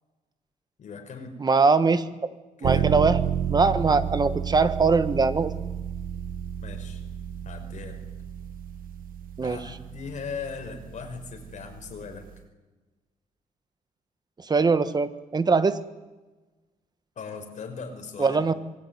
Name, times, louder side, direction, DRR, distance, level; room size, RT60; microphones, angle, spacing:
voice 1, 0.8-1.3 2.6-2.9 6.6-7.0 7.4-8.0 9.4-12.3 17.2-18.4, left 5 dB, 55° left, 4 dB, 5.7 m, -38 dB
voice 2, 1.4-2.1 2.6-3.2 3.5-5.5 9.4-9.6 14.4-15.8 18.2-18.5, right 4 dB, 30° right, 12 dB, 1.4 m, -22 dB
sound 1, 2.6-12.4, right 8 dB, 80° right, 1.5 m, -31 dB
26.0 x 22.0 x 9.6 m, 1.2 s
wide cardioid pair, 135°, 14 cm